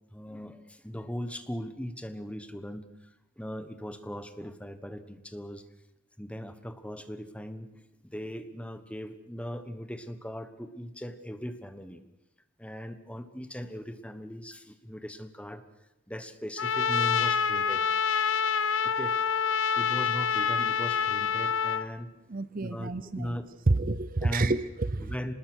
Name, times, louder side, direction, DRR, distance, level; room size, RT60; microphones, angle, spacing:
voice 1, 0.1-2.9 3.4-5.7 6.2-7.7 8.0-12.0 12.6-15.6 16.1-17.9 18.8-19.2 19.7-22.1 22.6-22.9 23.2-23.5 24.2-24.6 25.0-25.3, equal, 5° left, 10 dB, 1.3 m, -38 dB
Trumpet, 16.6-21.9, left 6 dB, 65° left, 0.9 m, -27 dB
voice 2, 22.3-23.4 23.7-25.0, right 2 dB, 45° right, 15 dB, 0.7 m, -28 dB
25.0 x 20.5 x 6.4 m, 0.93 s
head